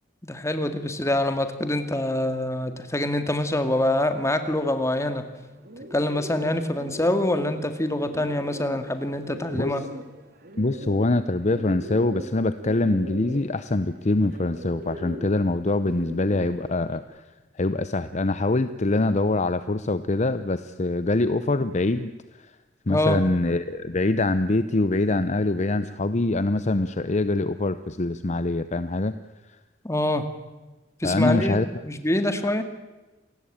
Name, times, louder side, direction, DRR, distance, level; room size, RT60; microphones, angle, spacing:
voice 1, 0.2-5.3 5.9-9.8 22.9-23.2 29.8-30.2 31.0-32.6, left 1 dB, 15° left, 8 dB, 2.2 m, -25 dB
Bird, 5.4-17.0, equal, 55° right, 2.7 m, -40 dB
voice 2, 10.6-17.2 17.6-22.1 22.4-22.5 22.9-29.2 31.0-31.7, left 2 dB, 40° left, 12 dB, 0.8 m, -24 dB
28.0 x 19.0 x 8.8 m, 1.1 s
head